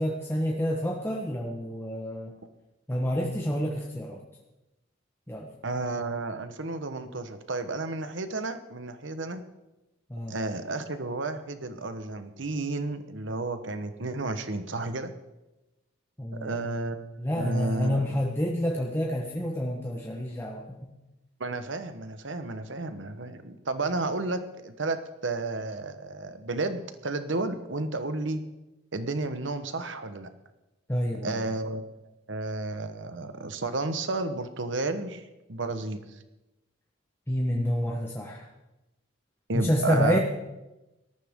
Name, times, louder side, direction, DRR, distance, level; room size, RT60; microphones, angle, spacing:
voice 1, 0.0-2.3 2.9-4.2 5.3-5.5 10.1-10.3 16.2-16.6 17.2-20.9 30.9-31.4 37.3-38.5 39.5-40.2, equal, 10° left, -1 dB, 1.1 m, -28 dB
voice 2, 5.6-9.4 10.3-15.1 16.3-18.0 21.4-28.4 28.9-30.3 31.2-31.8 32.3-36.2 39.5-40.2, right 2 dB, 65° right, 10 dB, 1.1 m, -32 dB
18.5 x 13.5 x 3.6 m, 1.0 s
head